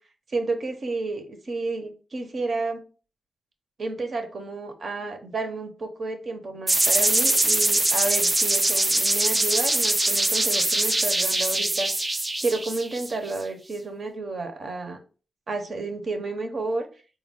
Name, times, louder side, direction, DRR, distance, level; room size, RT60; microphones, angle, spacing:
voice 1, 0.3-2.8 3.8-11.9 12.4-15.0 15.5-16.9, right 3 dB, 50° right, 0.8 m, -31 dB
sound 1, 6.7-13.4, right 2 dB, 20° right, 0.3 m, -23 dB
4.1 x 2.2 x 3.5 m
wide cardioid pair, 135°, 0 cm